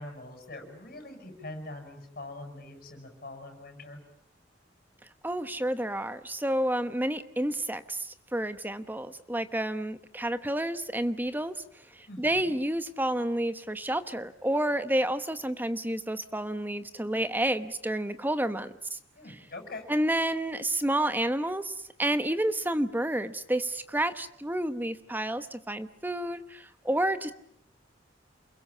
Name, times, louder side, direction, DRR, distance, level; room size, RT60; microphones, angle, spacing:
voice 1, 0.0-4.0 12.1-12.5 19.2-19.8, left 2 dB, 50° left, 5 dB, 7.6 m, -43 dB
voice 2, 5.2-11.6 11.9-19.0 19.9-27.3, right 1 dB, 10° right, 11 dB, 1.0 m, -30 dB
28.5 x 22.0 x 8.6 m, 0.71 s
head